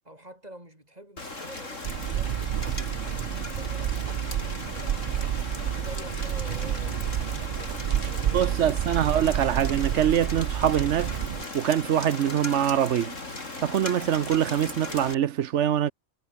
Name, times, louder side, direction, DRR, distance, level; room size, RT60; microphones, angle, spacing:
voice 1, 0.0-5.1 5.7-8.5, right 1 dB, 30° right, 8.0 m, -48 dB
Rain, 1.2-15.1, left 2 dB, 65° left, 4.9 m, -37 dB
sound 1, 1.8-11.4, right 11 dB, 80° right, 0.4 m, -30 dB
voice 2, 8.3-11.2 11.5-13.2 13.6-15.9, right 10 dB, 65° right, 1.0 m, -24 dB
omnidirectional pair, 1.4 m